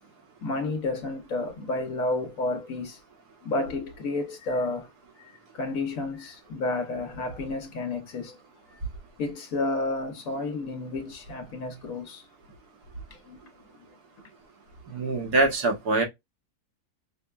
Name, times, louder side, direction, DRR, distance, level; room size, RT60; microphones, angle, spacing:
voice 1, 0.4-3.0 3.4-4.9 5.2-8.4 9.2-12.3 13.1-13.4 14.2-14.3, left 2 dB, 65° left, 1.1 m, -31 dB
voice 2, 14.9-16.0, right 2 dB, 80° right, 1.7 m, -24 dB
5.8 x 2.2 x 2.3 m
omnidirectional pair, 1.7 m